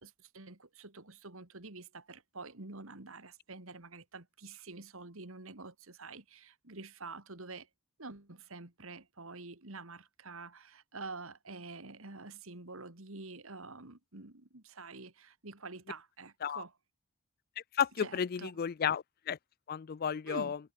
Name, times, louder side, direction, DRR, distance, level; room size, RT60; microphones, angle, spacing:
voice 1, 0.0-7.7 8.0-16.7 18.0-18.5 20.3-20.5, right 3 dB, 65° right, 2.4 m, -47 dB
voice 2, 17.7-19.4 19.7-20.6, left 7 dB, 45° left, 0.4 m, -33 dB
head